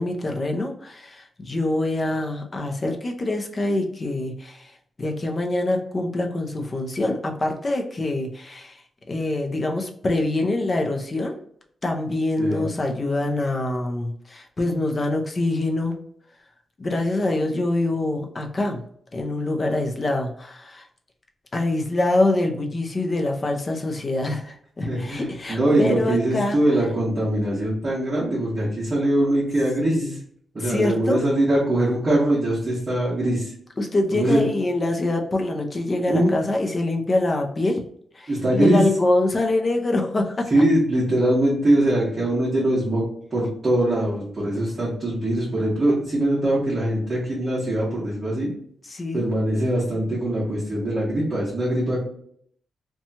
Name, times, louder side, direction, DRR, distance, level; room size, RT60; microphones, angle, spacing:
voice 1, 0.0-4.7 5.0-8.8 9.1-11.4 11.8-16.0 16.8-18.8 19.1-20.9 21.5-26.6 29.8-30.2 30.6-31.2 33.8-37.8 38.1-40.5 48.8-49.3, left 2 dB, 30° left, 3 dB, 0.5 m, -25 dB
voice 2, 24.9-30.2 30.5-33.5 34.1-34.4 36.1-36.3 38.3-38.8 40.5-43.0 43.3-48.5 49.1-52.0, right 1 dB, 30° right, -8 dB, 1.0 m, -22 dB
2.8 x 2.2 x 2.7 m, 0.64 s
wide cardioid pair, 135°, 0 cm